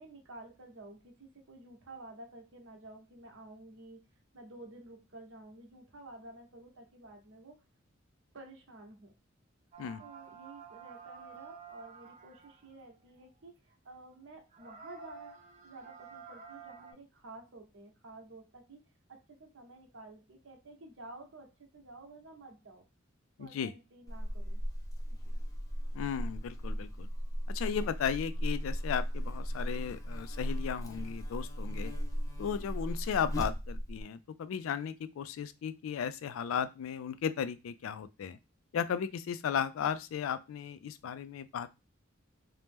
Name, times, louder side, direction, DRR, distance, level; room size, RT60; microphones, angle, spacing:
voice 1, 0.0-4.0 4.3-7.6 8.3-9.1 10.0-22.8 23.4-24.6 25.2-25.4, right 2 dB, 70° right, 2 dB, 0.8 m, -52 dB
sound 1, 9.7-12.7 13.7-13.8 14.2-14.3 14.5-16.9, right 6 dB, 35° right, 0.5 m, -50 dB
voice 2, 23.4-23.7 25.9-27.1 27.5-31.9 32.4-38.4 38.7-41.8, left 7 dB, 80° left, 13 dB, 0.3 m, -35 dB
Buzz, 24.1-34.0, equal, 15° left, 0.5 m, -36 dB
2.9 x 2.0 x 3.4 m, 0.26 s
head